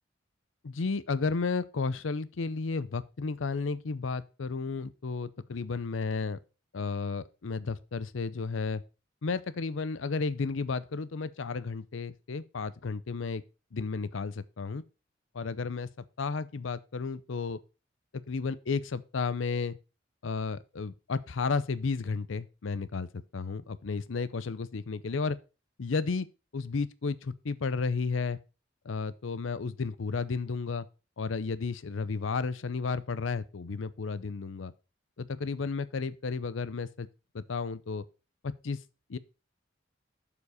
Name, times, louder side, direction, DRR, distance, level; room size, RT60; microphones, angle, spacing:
voice 1, 0.6-6.4 6.7-8.8 9.2-13.4 13.7-14.8 15.3-17.6 18.1-19.8 20.2-25.4 25.8-26.3 26.5-28.4 28.8-30.9 31.2-34.7 35.2-37.1 37.3-38.0 38.4-38.8 39.1-39.2, left 4 dB, 80° left, 0.6 m, -33 dB
7.1 x 6.9 x 4.9 m
head